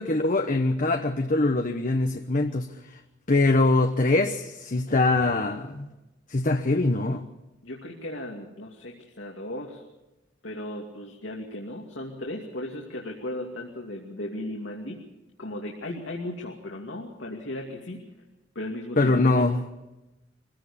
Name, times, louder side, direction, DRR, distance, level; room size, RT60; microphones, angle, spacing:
voice 1, 0.0-2.7 3.3-5.9 6.3-7.2 19.0-19.6, left 2 dB, 45° left, 6 dB, 1.0 m, -23 dB
voice 2, 7.6-9.8 10.4-15.0 15.4-18.0 18.5-19.5, left 1 dB, 85° left, -1 dB, 2.6 m, -36 dB
23.5 x 16.5 x 7.1 m, 1.0 s
head